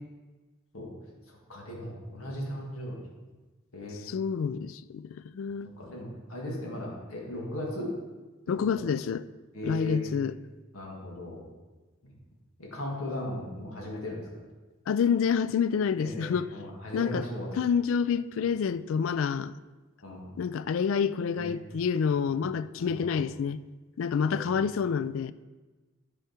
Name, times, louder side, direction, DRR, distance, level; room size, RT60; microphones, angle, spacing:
voice 1, 1.5-3.0 3.7-4.0 5.8-7.9 9.5-10.1 10.7-11.4 12.6-14.2 16.0-17.5 20.0-20.3 21.3-21.5 22.3-22.4 22.8-23.2 24.3-24.6, left 1 dB, 80° left, 1.9 m, -37 dB
voice 2, 4.1-5.7 8.5-9.2 9.6-10.4 14.9-16.5 16.9-17.3 17.5-19.5 20.4-23.6 24.0-25.3, left 6 dB, 65° left, 0.3 m, -28 dB
11.5 x 4.9 x 4.4 m
head